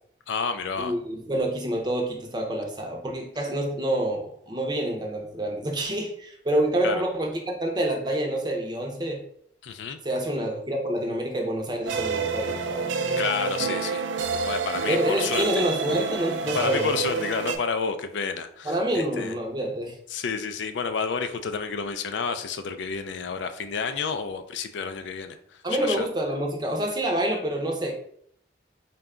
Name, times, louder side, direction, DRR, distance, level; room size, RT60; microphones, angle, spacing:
voice 1, 0.3-0.9 6.8-7.0 9.6-10.0 13.2-14.0 14.3-15.6 16.5-19.4 20.1-26.1, left 5 dB, 75° left, 8 dB, 0.4 m, -30 dB
voice 2, 0.8-9.2 10.0-13.3 14.9-16.9 18.6-20.0 25.6-27.9, right 1 dB, 25° right, 1 dB, 0.6 m, -27 dB
sound 1, 11.8-17.6, right 5 dB, 85° right, 0.4 m, -28 dB
3.8 x 2.2 x 3.6 m, 0.66 s
head